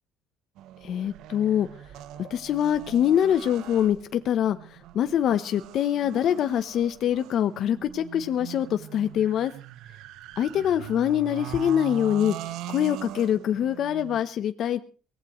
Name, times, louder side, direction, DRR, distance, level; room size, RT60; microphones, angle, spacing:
sound 1, 0.6-14.2, right 13 dB, 75° right, 0.9 m, -41 dB
voice 1, 0.8-1.7 2.2-9.5 10.4-14.8, left 10 dB, 55° left, 10 dB, 0.9 m, -24 dB
23.0 x 18.0 x 3.2 m, 0.38 s
cardioid pair, 115°, 0 cm